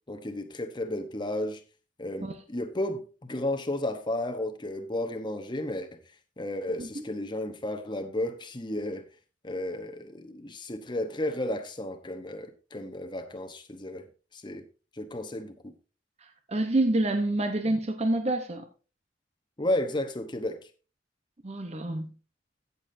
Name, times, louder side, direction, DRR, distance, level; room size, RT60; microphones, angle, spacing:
voice 1, 0.1-1.6 2.0-6.0 6.4-9.0 9.4-14.1 14.3-14.6 14.9-15.7 19.6-20.6, left 1 dB, 25° left, 1.0 m, -33 dB
voice 2, 16.2-18.6 21.4-22.1, right 2 dB, 35° right, 0.9 m, -27 dB
16.0 x 7.1 x 2.7 m
head